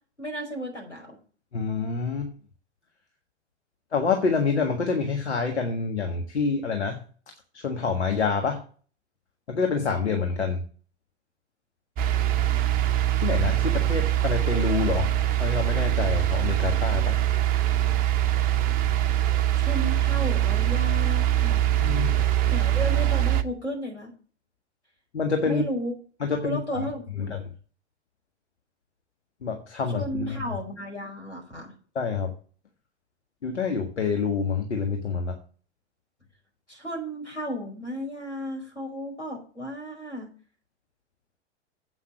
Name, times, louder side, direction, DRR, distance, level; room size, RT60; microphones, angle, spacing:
voice 1, 0.2-1.2 19.5-21.6 22.5-24.1 25.4-25.9 26.4-27.4 29.9-31.7 36.7-40.3, equal, 85° left, -1 dB, 5.2 m, -34 dB
voice 2, 1.5-2.3 3.9-7.0 7.5-8.6 9.5-10.6 13.2-15.1 15.4-17.2 21.8-22.2 25.1-25.6 26.2-26.9 27.2-27.4 29.4-30.4 31.9-32.3 33.4-35.4, left 5 dB, 70° left, 3 dB, 1.6 m, -27 dB
sound 1, 12.0-23.4, right 12 dB, 25° right, 0.7 m, -23 dB
8.3 x 5.7 x 8.0 m, 0.41 s
figure-of-eight pair, 95°, 34 cm